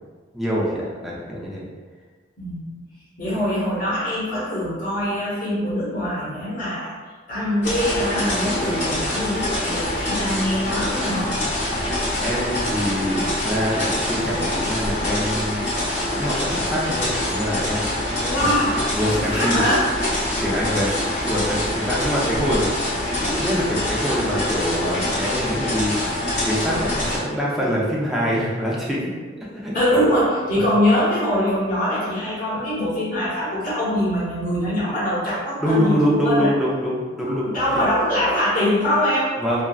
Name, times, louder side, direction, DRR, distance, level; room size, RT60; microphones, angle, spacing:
voice 1, 0.3-1.7 12.2-15.6 16.1-17.9 18.4-18.5 18.9-19.7 20.4-22.7 23.2-29.1 29.5-30.0 30.5-30.6 35.6-37.8 39.4-39.6, equal, ahead, -6 dB, 0.4 m, -25 dB
voice 2, 2.4-2.8 3.2-6.9 7.3-11.3 18.2-18.8 19.1-19.9 29.7-36.5 37.5-39.3, equal, 45° left, -9 dB, 1.0 m, -23 dB
sound 1, 7.6-27.2, left 1 dB, 65° left, 1.4 m, -25 dB
3.5 x 2.0 x 2.3 m, 1.4 s
head